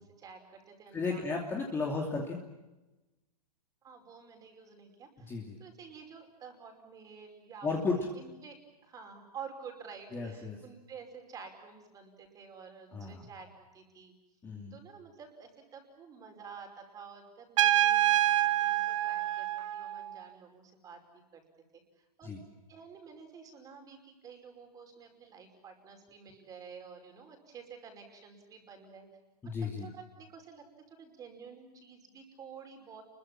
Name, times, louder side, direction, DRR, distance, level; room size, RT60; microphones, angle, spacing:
voice 1, 0.0-1.5 1.8-2.0 3.8-5.3 5.6-7.9 8.2-8.6 8.8-13.5 13.7-14.1 14.7-19.5 19.7-21.4 22.0-22.4 22.7-29.1 29.8-33.0, right 6 dB, 15° right, 4 dB, 5.3 m, -50 dB
voice 2, 0.9-2.4 5.2-5.6 7.6-8.0 10.1-10.6 12.9-13.3 14.4-14.7 22.2-22.4 29.4-29.9, left 4 dB, 10° left, 1 dB, 2.7 m, -34 dB
Trumpet, 17.6-20.2, right 14 dB, 50° right, 1.1 m, -27 dB
29.5 x 22.5 x 7.5 m, 1.1 s
hypercardioid pair, 155°, 20 cm